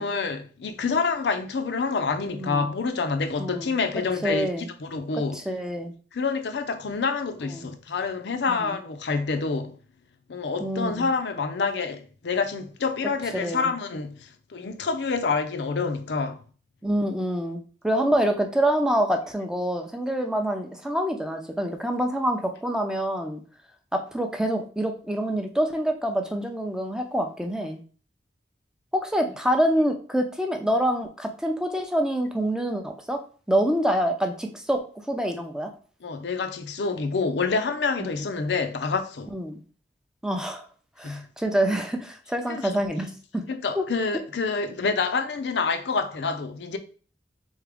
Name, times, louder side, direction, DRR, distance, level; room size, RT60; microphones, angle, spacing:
voice 1, 0.0-4.5 4.8-5.4 6.1-9.8 10.3-16.4 36.0-39.3 41.0-41.2 42.5-42.8 43.5-46.8, left 4 dB, 70° left, 0.5 m, -27 dB
voice 2, 3.4-3.7 4.2-4.7 5.1-5.9 7.5-7.7 8.6-8.7 10.6-11.1 13.3-13.7 16.8-23.4 23.9-27.8 28.9-33.2 33.5-34.8 35.1-35.7 38.0-38.1 39.3-39.6 40.2-40.7 41.0-43.4 43.8-43.9, equal, 5° right, 0.5 m, -26 dB
3.8 x 3.6 x 3.4 m
head